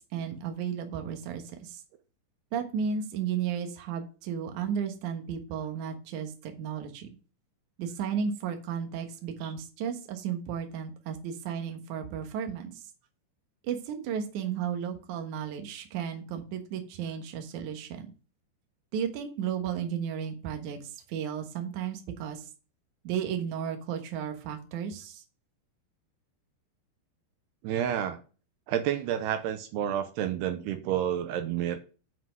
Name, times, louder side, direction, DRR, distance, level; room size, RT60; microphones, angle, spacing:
voice 1, 0.1-1.8 2.5-7.2 7.8-12.7 13.6-18.1 18.9-20.8 21.1-22.5 23.0-25.2, right 7 dB, 60° right, 4 dB, 2.3 m, -34 dB
voice 2, 27.6-28.2 28.7-31.8, right 10 dB, 80° right, 8 dB, 2.8 m, -30 dB
7.6 x 5.9 x 6.1 m, 0.35 s
omnidirectional pair, 4.8 m